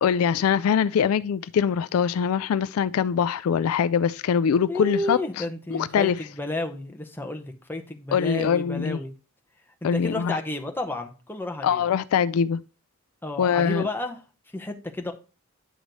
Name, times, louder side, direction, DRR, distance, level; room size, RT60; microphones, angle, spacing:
voice 1, 0.0-5.4 5.7-6.2 8.1-9.0 9.8-10.4 11.6-12.6 13.4-13.9, left 7 dB, 80° left, 0.3 m, -23 dB
voice 2, 4.7-9.2 9.9-11.8 13.2-14.2 14.5-15.1, left 2 dB, 10° left, 0.7 m, -31 dB
9.0 x 3.1 x 5.3 m
head